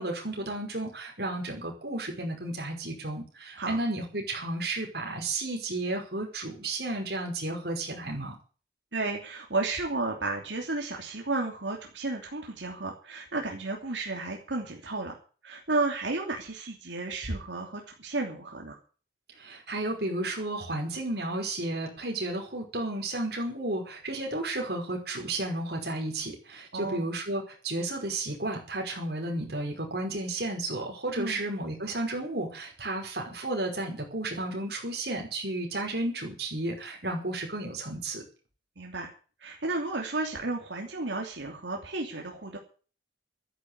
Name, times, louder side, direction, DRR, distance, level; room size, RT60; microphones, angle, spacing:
voice 1, 0.0-8.4 19.4-38.2, right 2 dB, 60° right, 1 dB, 5.4 m, -33 dB
voice 2, 8.9-15.2 15.4-18.8 26.7-27.1 31.2-31.4 38.8-39.1 39.4-42.6, right 2 dB, 90° right, 1 dB, 3.0 m, -32 dB
13.0 x 10.5 x 8.2 m, 0.39 s
head